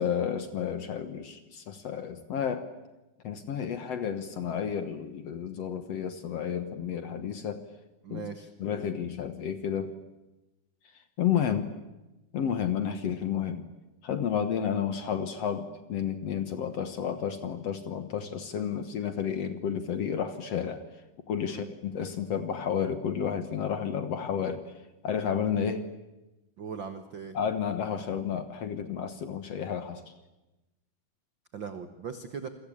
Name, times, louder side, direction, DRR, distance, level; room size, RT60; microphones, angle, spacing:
voice 1, 0.0-2.7 3.2-7.6 8.1-8.3 8.6-9.9 11.2-11.7 12.3-13.7 14.0-20.8 21.3-24.7 25.0-25.9 27.3-30.0, left 8 dB, 60° left, 10 dB, 1.9 m, -31 dB
voice 2, 8.0-8.5 21.5-21.7 26.6-27.4 31.5-32.5, right 6 dB, 70° right, 9 dB, 1.1 m, -39 dB
28.0 x 22.5 x 8.7 m, 1.0 s
omnidirectional pair, 4.2 m